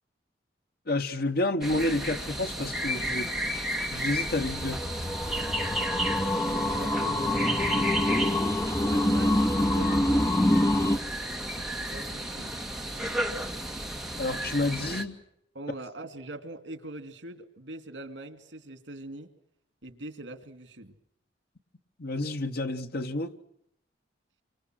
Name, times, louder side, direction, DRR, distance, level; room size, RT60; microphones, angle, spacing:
voice 1, 0.9-3.3 3.9-4.8 14.2-15.2 22.0-23.3, left 2 dB, 60° left, 1.3 m, -29 dB
sound 1, 1.6-15.0, right 1 dB, ahead, 2.0 m, -33 dB
sound 2, 4.2-11.0, left 1 dB, 15° left, 1.1 m, -26 dB
voice 2, 6.2-8.0 8.9-10.3 11.8-12.6 15.5-19.3 19.8-20.9, right 1 dB, 85° right, 2.6 m, -42 dB
29.0 x 25.5 x 6.4 m
head